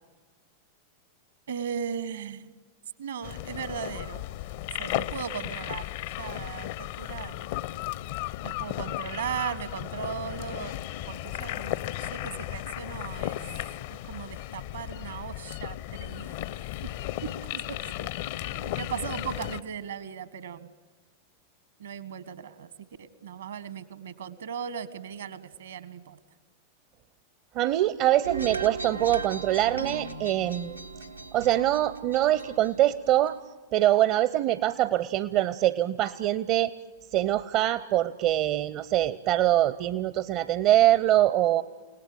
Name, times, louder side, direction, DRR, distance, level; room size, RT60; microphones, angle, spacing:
voice 1, 1.5-2.4 3.0-4.2 4.7-5.9 6.2-7.4 8.4-10.8 11.1-13.4 14.0-16.5 17.2-18.1 18.3-20.7 21.8-26.2, right 7 dB, 65° right, 15 dB, 1.5 m, -37 dB
sound 1, 3.2-19.6, left 14 dB, 50° left, 0.7 m, -35 dB
voice 2, 27.5-30.8 31.3-33.4 33.7-36.7 37.1-41.6, right 13 dB, 40° right, 15 dB, 0.7 m, -24 dB
sound 2, 28.2-33.3, right 4 dB, 85° right, 1.1 m, -38 dB
30.0 x 18.5 x 9.0 m, 1.4 s
figure-of-eight pair, 90°, 0 cm